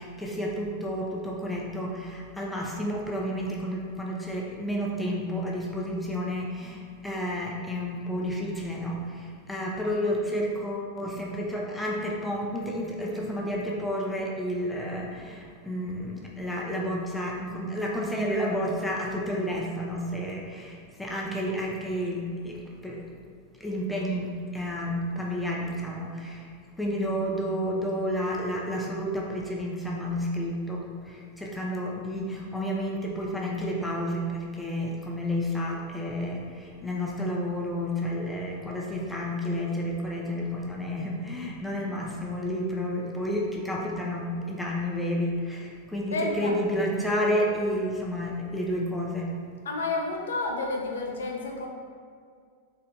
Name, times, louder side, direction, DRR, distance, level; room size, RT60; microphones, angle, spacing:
voice 1, 0.0-23.0 23.5-26.5 26.8-49.3, equal, 5° left, -3 dB, 0.6 m, -31 dB
voice 2, 46.1-46.6 49.7-51.7, left 2 dB, 65° left, 1 dB, 0.5 m, -30 dB
4.3 x 3.3 x 2.6 m, 2.1 s
figure-of-eight pair, 90°, 0 cm